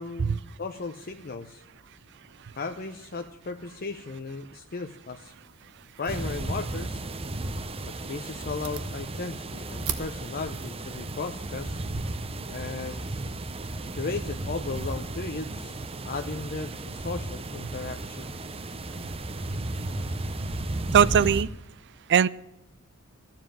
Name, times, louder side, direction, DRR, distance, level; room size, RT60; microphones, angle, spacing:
voice 1, 0.0-1.6 2.6-5.3 6.0-7.0 7.8-11.8 12.5-13.0 13.9-18.4, left 4 dB, 40° left, 6 dB, 0.7 m, -36 dB
sound 1, 5.3-12.5, right 8 dB, 70° right, 1.1 m, -43 dB
sound 2, 6.1-21.4, right 2 dB, 25° right, 0.7 m, -34 dB
voice 2, 20.9-21.5 22.1-22.3, right 8 dB, 50° right, 19 dB, 0.4 m, -20 dB
14.0 x 7.4 x 8.9 m, 0.92 s
head